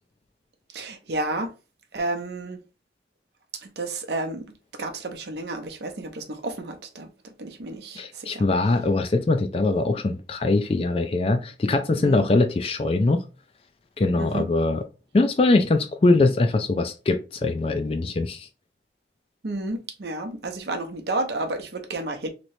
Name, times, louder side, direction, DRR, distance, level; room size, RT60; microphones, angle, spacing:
voice 1, 0.7-1.5 1.9-2.6 3.6-7.1 7.4-8.4 12.0-12.2 14.2-14.5 19.4-22.3, right 2 dB, 70° right, 0.7 m, -31 dB
voice 2, 8.0-13.2 14.0-14.8 15.1-18.5, left 2 dB, 30° left, 0.3 m, -22 dB
3.0 x 3.0 x 2.7 m
head